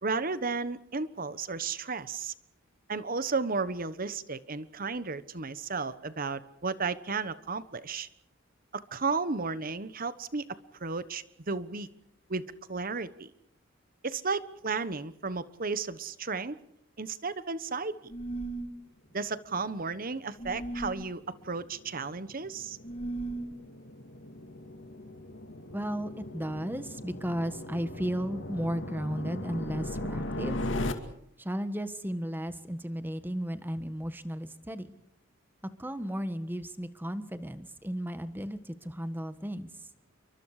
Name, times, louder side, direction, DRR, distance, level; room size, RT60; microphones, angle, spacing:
voice 1, 0.0-2.3 2.9-8.1 8.7-10.4 10.8-11.9 12.3-12.4 12.7-13.3 14.0-16.6 17.0-18.1 19.1-22.8, right 4 dB, 45° right, 14 dB, 1.2 m, -33 dB
sound 1, 18.1-18.7 20.4-21.0 22.8-23.5, right 2 dB, 35° left, 2.2 m, -36 dB
sound 2, 19.8-30.9, left 1 dB, 70° left, 2.3 m, -39 dB
voice 2, 25.7-30.6 31.4-34.9 35.8-39.7, equal, 10° right, 11 dB, 1.4 m, -34 dB
29.0 x 24.0 x 5.0 m, 0.70 s
head